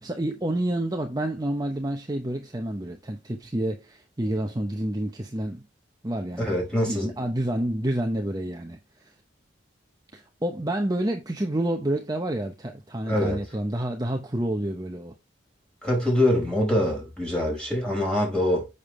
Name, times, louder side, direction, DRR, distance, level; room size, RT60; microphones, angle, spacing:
voice 1, 0.0-5.6 6.0-6.5 6.9-8.8 10.1-15.1, right 1 dB, 20° right, 0.9 m, -29 dB
voice 2, 6.4-7.1 13.0-13.4 15.8-18.7, left 1 dB, 5° left, 5.1 m, -24 dB
7.2 x 6.8 x 3.2 m
head